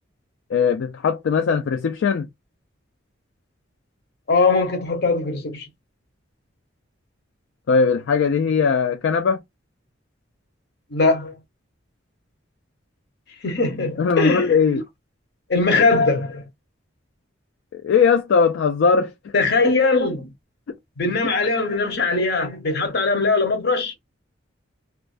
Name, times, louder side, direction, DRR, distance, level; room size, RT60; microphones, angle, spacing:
voice 1, 0.5-2.3 7.7-9.4 14.0-14.8 17.7-19.1 20.7-20.8, left 5 dB, 75° left, 0.3 m, -19 dB
voice 2, 4.3-5.7 10.9-11.3 13.4-14.8 15.5-16.4 19.3-20.3 21.0-23.9, left 3 dB, 55° left, 0.8 m, -20 dB
2.4 x 2.2 x 2.4 m
head